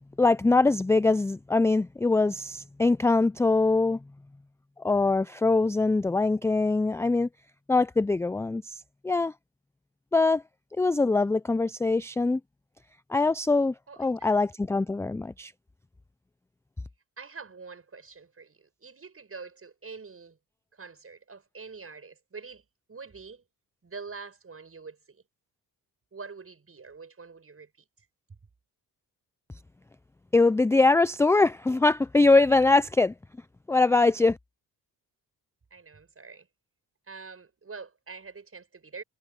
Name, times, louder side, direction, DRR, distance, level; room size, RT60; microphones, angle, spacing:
voice 1, 0.2-4.0 4.8-7.3 7.7-8.8 9.0-9.3 10.1-10.4 10.8-12.4 13.1-15.5 30.3-33.1 33.7-34.4, left 3 dB, 10° left, 0.3 m, -23 dB
voice 2, 13.9-14.3 17.2-20.4 20.7-23.4 23.8-25.2 26.1-28.1 35.7-36.5 37.1-39.0, right 4 dB, 35° right, 7.5 m, -45 dB
cardioid pair, 85°, 38 cm